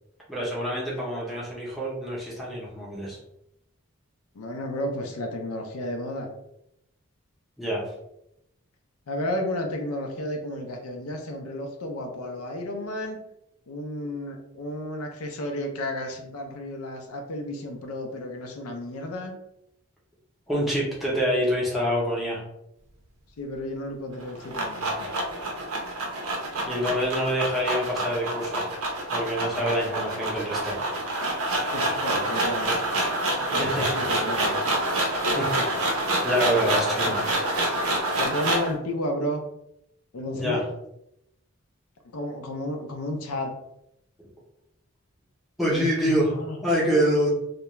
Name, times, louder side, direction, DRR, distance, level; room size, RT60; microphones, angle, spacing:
voice 1, 0.3-3.2 7.6-7.8 20.5-22.4 26.7-28.7 29.1-30.8 33.4-33.9 35.2-35.5 36.2-37.2 40.3-40.6 45.6-47.3, equal, ahead, -6 dB, 0.6 m, -26 dB
voice 2, 4.3-6.3 9.1-13.2 13.7-19.3 23.4-25.1 31.7-32.8 33.5-34.6 38.2-39.4 40.1-40.6 42.1-43.6 46.3-46.6, left 1 dB, 85° left, 3 dB, 0.5 m, -32 dB
sound 1, 24.1-38.7, right 1 dB, 80° right, 0.6 m, -27 dB
2.3 x 2.1 x 2.9 m, 0.81 s
head